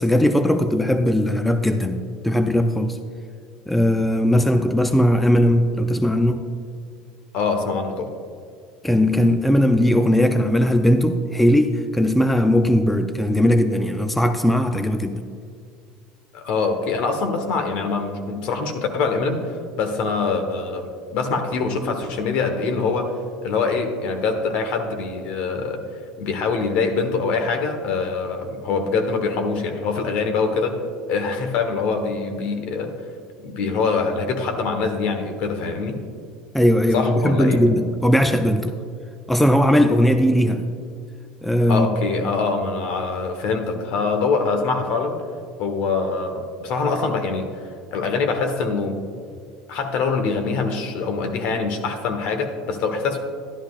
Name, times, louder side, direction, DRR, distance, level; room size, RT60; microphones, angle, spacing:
voice 1, 0.0-3.0 3.7-6.5 8.8-15.3 36.5-38.7 39.3-40.7 41.4-42.0, equal, 5° left, 8 dB, 0.5 m, -18 dB
voice 2, 7.3-8.1 16.3-23.1 23.4-25.8 26.2-30.8 31.1-32.9 33.4-36.0 36.9-37.6 41.7-45.2 45.6-47.5 47.9-49.0 49.7-53.2, left 4 dB, 65° left, 5 dB, 1.2 m, -24 dB
11.5 x 11.0 x 2.4 m, 2.1 s
supercardioid pair, 100°, 2 cm